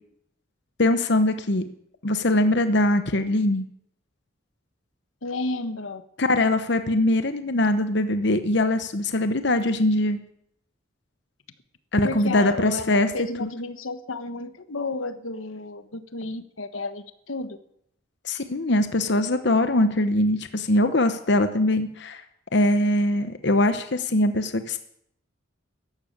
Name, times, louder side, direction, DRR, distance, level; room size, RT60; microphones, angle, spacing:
voice 1, 0.8-1.6 2.0-3.6 6.2-10.2 11.9-13.1 18.2-22.2 22.5-24.8, left 1 dB, 55° left, 9 dB, 1.0 m, -22 dB
voice 2, 5.2-6.0 12.0-17.6, left 3 dB, 85° left, 11 dB, 1.3 m, -32 dB
14.0 x 12.0 x 8.7 m, 0.72 s
head